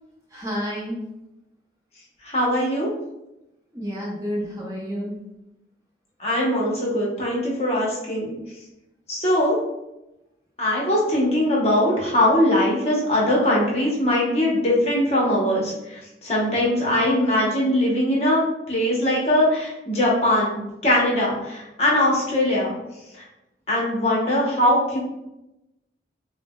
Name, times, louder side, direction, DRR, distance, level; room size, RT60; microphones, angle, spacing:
voice 1, 0.3-1.0 3.7-5.1, equal, 20° right, -4 dB, 0.7 m, -30 dB
voice 2, 2.2-2.9 6.2-8.4 9.1-9.6 10.6-22.7 23.7-25.0, left 1 dB, 35° left, -4 dB, 0.9 m, -21 dB
5.9 x 2.1 x 2.2 m, 0.92 s
head